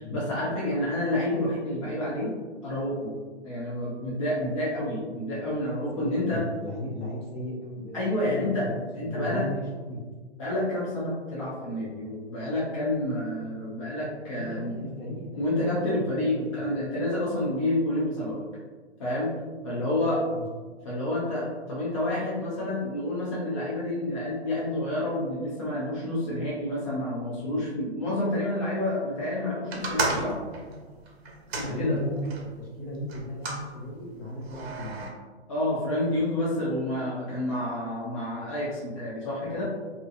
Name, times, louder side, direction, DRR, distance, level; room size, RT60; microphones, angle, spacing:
voice 1, 0.1-2.3 2.6-3.1 3.4-6.4 7.9-8.7 9.0-9.4 10.4-14.7 15.4-18.5 19.0-19.3 19.6-20.2 20.8-30.4 31.5-32.0 35.5-39.6, left 1 dB, 30° left, -7 dB, 0.4 m, -29 dB
voice 2, 5.9-8.8 9.0-10.0 14.3-15.7 15.9-16.0 16.3-16.6 19.8-20.4 31.6-35.0 39.4-39.6, left 1 dB, 55° left, -3 dB, 1.0 m, -36 dB
sound 1, 29.7-32.5 33.1-33.7 34.4-35.1, right 3 dB, 60° right, 0.7 m, -33 dB
2.5 x 2.4 x 2.4 m, 1.4 s
hypercardioid pair, 155°, 35 cm